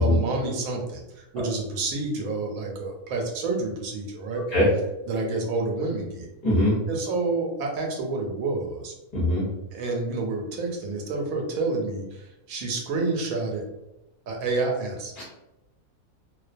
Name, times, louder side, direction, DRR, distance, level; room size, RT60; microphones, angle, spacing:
voice 1, 0.0-4.4 5.1-6.3 6.9-8.9 9.7-13.6 14.3-15.1, right 3 dB, 80° right, 1 dB, 1.0 m, -29 dB
voice 2, 6.4-6.8 9.1-9.5 15.2-15.3, left 1 dB, 45° left, -6 dB, 0.6 m, -21 dB
2.4 x 2.2 x 2.5 m, 0.94 s
omnidirectional pair, 1.5 m